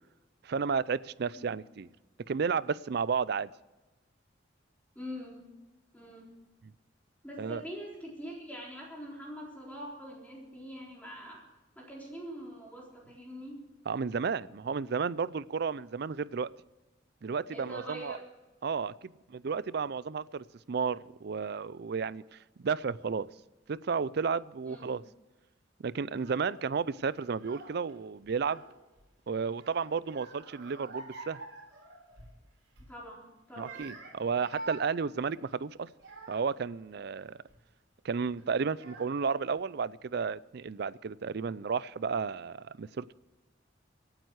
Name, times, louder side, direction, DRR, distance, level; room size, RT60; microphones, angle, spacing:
voice 1, 0.4-1.9 2.3-3.5 7.4-7.6 13.9-16.5 17.2-18.2 18.6-23.3 23.7-25.0 25.8-28.6 29.3-31.4 33.6-35.9 36.3-37.4 38.0-43.1, right 5 dB, 55° right, 19 dB, 0.4 m, -32 dB
voice 2, 5.0-5.5 5.9-6.3 7.2-11.4 11.8-13.6 17.5-18.2 24.7-24.9 32.9-33.9, equal, 10° left, -4 dB, 3.9 m, -44 dB
Child speech kid speaking / Crying sobbing, 26.1-26.6 27.3-27.9 28.2-29.1 29.5-32.4 32.7-33.0 33.5-36.6 37.2-37.6 38.4-38.5 38.7-39.4, right 2 dB, 75° right, 4.2 m, -48 dB
26.0 x 9.0 x 4.7 m, 1.1 s
head